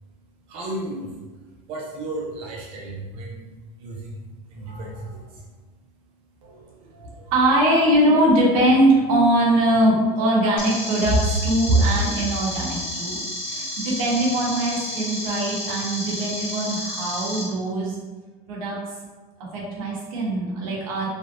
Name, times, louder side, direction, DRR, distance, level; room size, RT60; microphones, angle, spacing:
voice 1, 0.5-1.1 1.5-5.4, right 2 dB, 30° right, -4 dB, 0.5 m, -34 dB
voice 2, 6.4-13.2 13.5-18.0 18.5-18.8 19.5-21.1, right 1 dB, 75° right, -4 dB, 1.1 m, -21 dB
sound 1, 10.6-17.4, left 1 dB, 50° left, 1.1 m, -31 dB
3.2 x 2.7 x 2.6 m, 1.3 s
cardioid pair, 175°, 18 cm